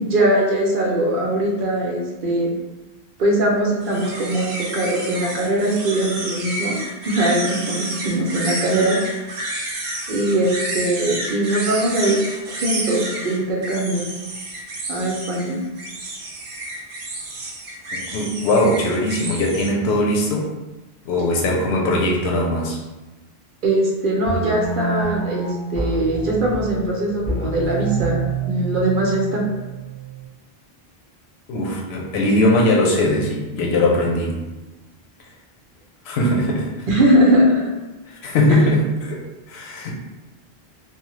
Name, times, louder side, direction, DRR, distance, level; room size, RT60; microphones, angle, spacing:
voice 1, 0.0-2.5 3.2-6.8 7.0-9.0 10.1-12.2 12.6-14.1 14.9-15.6 23.6-28.2 28.5-29.4 36.9-37.7 38.4-38.7, right 1 dB, 60° right, -2 dB, 0.7 m, -21 dB
sound 1, 3.8-19.7, right 1 dB, 90° right, 0.9 m, -30 dB
voice 2, 17.9-20.5 21.0-22.8 31.5-34.4 36.0-36.9 38.1-39.9, left 1 dB, 85° left, -1 dB, 0.9 m, -20 dB
sound 2, 24.2-30.3, right 4 dB, 35° left, 1.0 m, -28 dB
2.7 x 2.1 x 3.0 m, 1.1 s
omnidirectional pair, 1.0 m